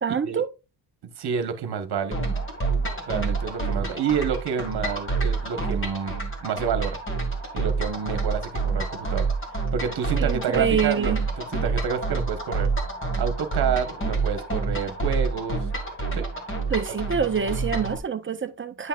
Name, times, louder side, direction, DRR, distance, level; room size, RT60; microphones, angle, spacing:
voice 1, 0.0-0.5 10.2-11.2 16.7-18.9, right 7 dB, 25° right, 0.6 m, -26 dB
voice 2, 1.0-2.2 3.1-6.2 6.4-7.0 7.5-9.3 9.7-12.7 13.2-15.7 16.1-16.3, right 7 dB, 55° right, 1.2 m, -29 dB
sound 1, 2.1-18.0, right 4 dB, 25° left, 1.9 m, -28 dB
9.8 x 5.5 x 2.4 m
cardioid pair, 135°, 48 cm